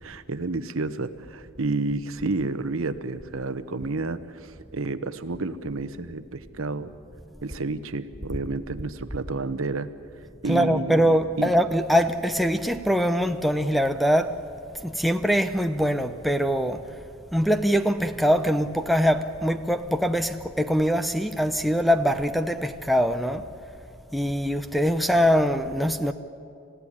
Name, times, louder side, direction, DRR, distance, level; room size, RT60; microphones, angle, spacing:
voice 1, 0.0-6.9 7.4-9.9 10.4-11.1 11.4-11.5, right 3 dB, 70° right, 1.0 m, -30 dB
voice 2, 10.4-14.4 14.8-16.8 17.3-23.4 24.1-26.1, equal, ahead, 0.7 m, -23 dB
28.5 x 16.0 x 10.0 m
head